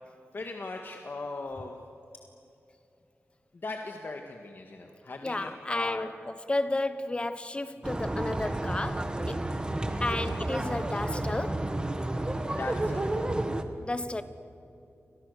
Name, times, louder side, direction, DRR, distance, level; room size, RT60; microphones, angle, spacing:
voice 1, 0.3-1.8 3.5-6.1 12.5-13.1, left 3 dB, 45° left, 1.8 m, -39 dB
voice 2, 5.2-9.4 10.0-11.7 13.8-14.2, left 2 dB, 20° left, 1.1 m, -32 dB
sound 1, 7.8-13.6, right 1 dB, 20° right, 1.6 m, -31 dB
29.5 x 24.5 x 6.8 m
wide cardioid pair, 135°, 5 cm